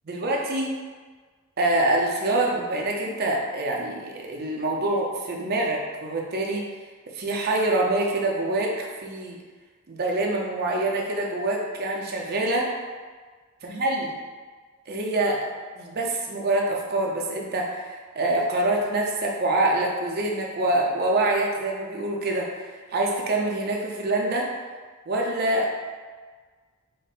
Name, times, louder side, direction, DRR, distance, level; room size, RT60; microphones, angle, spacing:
voice 1, 0.1-0.7 1.6-6.7 7.1-9.4 9.9-12.7 13.6-14.1 14.9-15.4 15.8-24.5 25.1-25.7, right 2 dB, 45° right, -1 dB, 0.7 m, -25 dB
5.3 x 2.1 x 4.0 m, 1.5 s
head